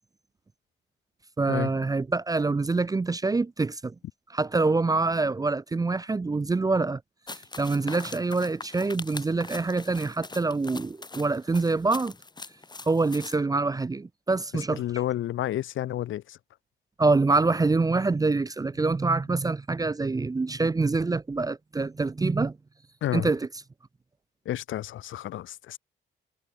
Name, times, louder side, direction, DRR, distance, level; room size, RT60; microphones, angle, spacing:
voice 1, 1.4-3.9 4.3-7.0 7.6-12.1 12.9-14.8 17.0-22.6 23.1-23.5, right 3 dB, 20° right, 0.6 m, -25 dB
sound 1, 7.3-13.4, left 3 dB, 20° left, 5.2 m, -42 dB
voice 2, 14.5-16.4 23.0-23.3 24.4-25.8, left 13 dB, 75° left, 3.2 m, -31 dB
cardioid pair, 90°, 20 cm